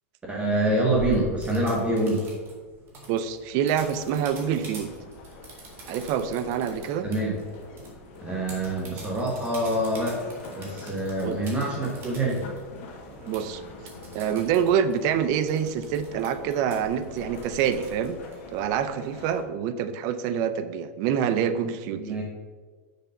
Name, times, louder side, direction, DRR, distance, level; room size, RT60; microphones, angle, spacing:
voice 1, 0.3-2.3 7.0-7.3 8.2-10.2 10.5-12.4 21.9-22.2, right 1 dB, 15° right, -2 dB, 1.3 m, -26 dB
sound 1, 0.9-18.9, right 1 dB, 30° right, 2.2 m, -45 dB
voice 2, 3.1-4.9 5.9-7.1 11.2-11.4 13.3-13.6 14.1-18.2 18.5-22.2, right 8 dB, 45° right, 11 dB, 0.6 m, -26 dB
sound 2, 3.7-19.4, left 3 dB, 55° left, 1.5 m, -46 dB
6.7 x 5.1 x 5.6 m, 1.4 s
supercardioid pair, 145°, 8 cm